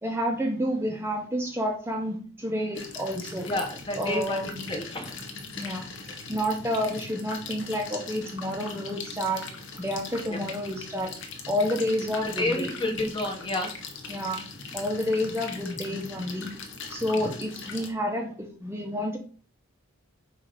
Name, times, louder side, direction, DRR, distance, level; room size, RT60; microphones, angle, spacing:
voice 1, 0.0-3.5 4.0-4.6 5.6-5.9 6.3-9.4 9.8-11.1 11.5-12.7 14.1-14.4 14.7-16.5 16.9-19.2, equal, 10° right, 1 dB, 0.8 m, -29 dB
sound 1, 2.7-17.9, left 4 dB, 60° left, 1.0 m, -40 dB
voice 2, 3.5-5.1 10.3-10.4 12.2-13.7, left 1 dB, 20° left, 2 dB, 1.0 m, -30 dB
7.2 x 2.7 x 5.0 m, 0.43 s
head